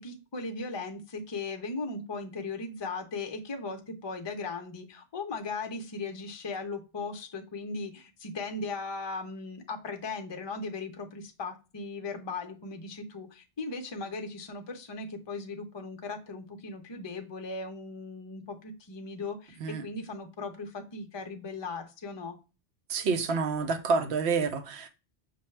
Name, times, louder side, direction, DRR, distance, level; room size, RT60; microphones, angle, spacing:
voice 1, 0.0-22.4, left 3 dB, 30° left, 0.5 m, -38 dB
voice 2, 22.9-24.9, right 4 dB, 65° right, 0.9 m, -28 dB
5.9 x 2.3 x 3.2 m
omnidirectional pair, 1.2 m